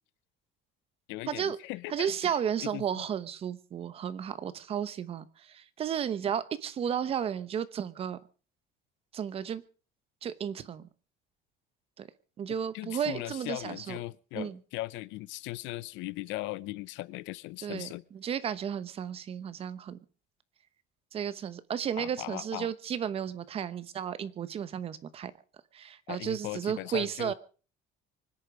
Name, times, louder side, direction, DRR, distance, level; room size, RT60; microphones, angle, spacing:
voice 1, 1.1-2.3 2.6-3.0 12.7-18.0 22.0-22.7 26.1-27.3, left 19 dB, 80° left, 0.7 m, -38 dB
voice 2, 1.9-8.2 9.1-9.6 10.2-10.9 12.0-12.1 12.4-14.0 14.3-14.6 17.6-20.0 21.1-25.3 25.7-27.3, right 8 dB, 30° right, 0.9 m, -33 dB
25.0 x 10.5 x 5.1 m
cardioid pair, 180°, 19 cm